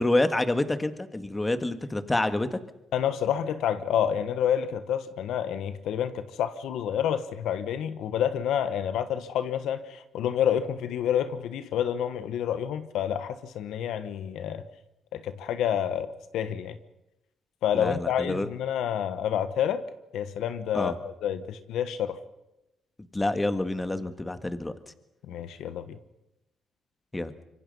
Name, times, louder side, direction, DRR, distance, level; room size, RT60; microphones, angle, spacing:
voice 1, 0.0-2.6 17.7-18.5 20.7-21.0 23.1-24.7 27.1-27.3, left 2 dB, 15° left, 10 dB, 1.6 m, -27 dB
voice 2, 2.9-14.6 15.1-16.8 17.6-19.8 20.1-20.9 21.2-22.2 25.3-26.0, left 9 dB, 85° left, 11 dB, 1.3 m, -28 dB
25.5 x 23.5 x 5.5 m, 0.93 s
cardioid pair, 90°, 0 cm